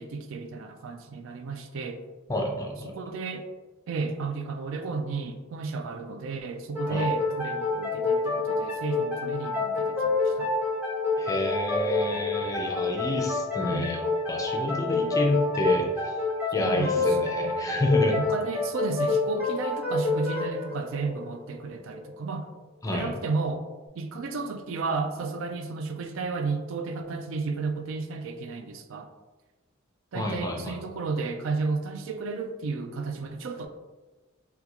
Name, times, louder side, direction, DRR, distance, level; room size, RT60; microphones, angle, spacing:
voice 1, 0.0-2.0 2.8-3.4 3.9-10.5 13.6-14.0 16.6-17.3 18.1-22.5 22.9-23.6 24.0-29.1 30.1-33.7, right 4 dB, 65° right, 7 dB, 0.4 m, -33 dB
voice 2, 2.3-3.0 6.9-7.0 11.2-16.1 16.5-18.2 22.8-23.1 30.1-30.8, left 1 dB, 15° left, 1 dB, 0.4 m, -28 dB
sound 1, 6.7-22.1, left 3 dB, 5° right, 0.9 m, -28 dB
3.6 x 2.3 x 2.9 m, 1.2 s
head